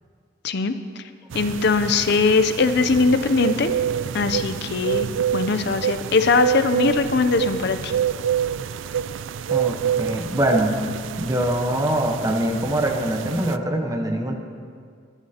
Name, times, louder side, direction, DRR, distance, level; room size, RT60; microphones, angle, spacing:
voice 1, 1.3-3.7 4.1-5.1 5.3-7.9, left 4 dB, 60° left, 10 dB, 0.6 m, -20 dB
sound 1, 1.3-13.6, right 9 dB, 80° right, 0.4 m, -27 dB
voice 2, 9.5-10.8 11.2-14.3, right 1 dB, 20° right, 3 dB, 1.0 m, -23 dB
21.5 x 11.0 x 2.9 m, 2.1 s
head